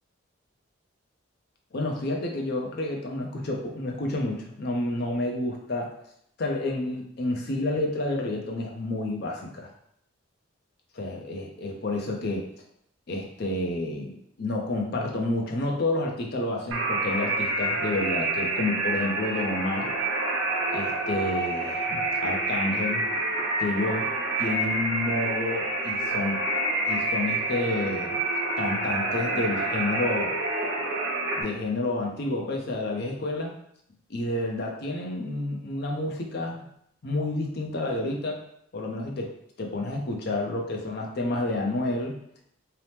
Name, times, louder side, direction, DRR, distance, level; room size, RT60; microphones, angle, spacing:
voice 1, 1.7-5.9 6.4-9.7 10.9-12.5 13.1-19.9 20.7-23.1 23.6-24.1 24.4-26.4 26.9-28.2 28.6-30.3 31.4-33.5 34.1-36.7 37.0-38.4 38.7-39.3 39.6-42.2, left 2 dB, 50° left, 1 dB, 0.5 m, -29 dB
sound 1, 16.7-31.4, right 2 dB, 75° right, 0.6 m, -28 dB
2.8 x 2.0 x 3.2 m, 0.72 s
head